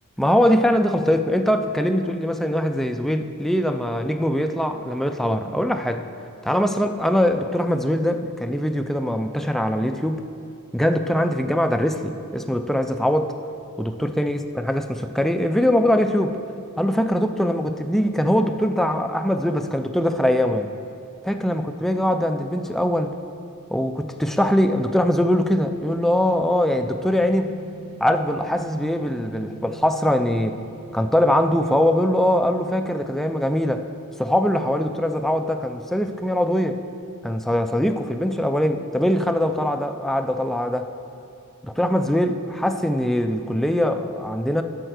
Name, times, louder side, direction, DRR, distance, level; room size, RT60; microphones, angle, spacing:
voice 1, 0.2-6.1 6.4-10.2 10.7-13.3 13.8-16.4 16.8-20.7 21.2-23.1 23.7-27.6 28.0-30.6 30.9-33.9 34.2-36.8 37.2-40.9 41.6-44.6, equal, ahead, 6 dB, 0.3 m, -22 dB
sound 1, 24.6-31.0, right 3 dB, 80° right, 2.0 m, -43 dB
12.5 x 4.4 x 6.4 m, 2.5 s
head